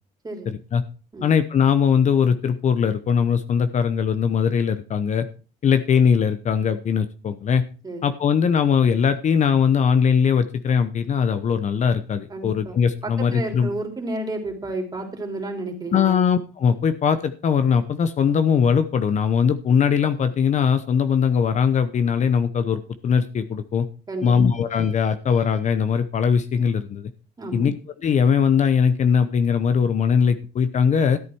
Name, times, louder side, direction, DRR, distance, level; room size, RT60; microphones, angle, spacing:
voice 1, 0.5-0.8 1.2-5.3 5.6-7.6 8.0-13.7 15.9-23.9 24.2-27.1 27.5-27.7 28.0-31.2, left 7 dB, 45° left, 11 dB, 0.8 m, -20 dB
voice 2, 12.3-12.8 13.0-16.3 24.1-24.6 27.4-27.7, right 2 dB, 25° right, 2 dB, 3.4 m, -31 dB
13.0 x 8.3 x 4.6 m, 0.37 s
cardioid pair, 110°, 17 cm